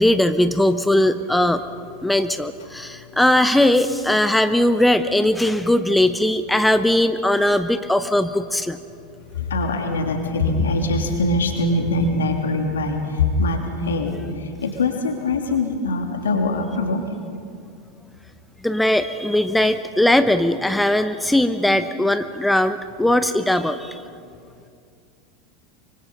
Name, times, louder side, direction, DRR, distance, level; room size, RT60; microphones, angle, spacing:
voice 1, 0.0-1.6 2.0-8.8 18.6-24.0, left 1 dB, 5° left, 10 dB, 0.8 m, -19 dB
voice 2, 9.3-17.2, left 2 dB, 70° left, 3 dB, 2.9 m, -23 dB
24.5 x 24.5 x 5.6 m, 2.4 s
figure-of-eight pair, 85°, 0 cm